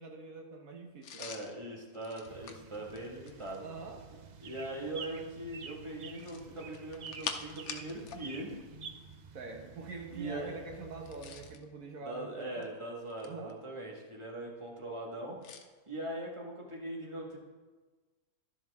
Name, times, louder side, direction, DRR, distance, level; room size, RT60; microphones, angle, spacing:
voice 1, 0.0-1.3 3.6-4.0 9.3-12.7 13.2-13.6, right 3 dB, 75° right, 3 dB, 1.6 m, -45 dB
sound 1, 1.0-3.7 6.1-8.3 8.5-8.7 10.9-11.6 12.4-13.5 15.4-15.7, left 7 dB, 90° left, 1.2 m, -45 dB
voice 2, 1.2-3.6 4.4-8.6 10.1-10.6 12.0-15.4 15.9-17.4, right 1 dB, 20° right, -2 dB, 1.8 m, -41 dB
sound 2, 2.3-11.6, right 5 dB, 55° right, 0.4 m, -50 dB
11.5 x 11.0 x 3.6 m, 1.3 s
omnidirectional pair, 1.5 m